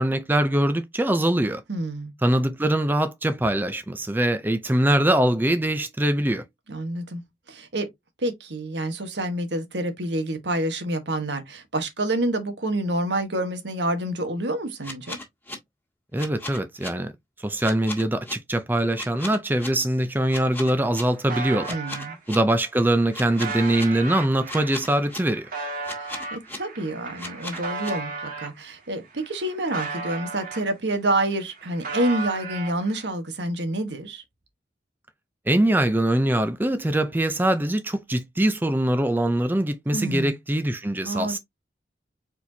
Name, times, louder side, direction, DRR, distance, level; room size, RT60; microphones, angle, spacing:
voice 1, 0.0-1.6 2.2-6.5 16.1-17.1 17.4-21.8 22.3-25.5 35.5-41.4, right 1 dB, 10° right, 0.5 m, -23 dB
voice 2, 1.7-2.1 6.7-7.2 7.5-7.9 8.2-15.2 21.7-22.2 26.0-34.2 39.9-40.3 41.0-41.4, right 1 dB, 75° right, 1.3 m, -28 dB
sound 1, 14.8-15.5 16.2-16.9 17.6-18.3 18.9-19.7 20.3-21.0 21.6-22.4 23.1-23.8 24.5-25.2 25.8-26.6 27.2-27.9, left 2 dB, 10° left, 1.8 m, -36 dB
sound 2, 20.3-20.4 20.6-22.2 22.8-28.6 29.0-31.0 31.3-33.1, right 4 dB, 50° right, 1.7 m, -35 dB
4.5 x 4.2 x 2.7 m
head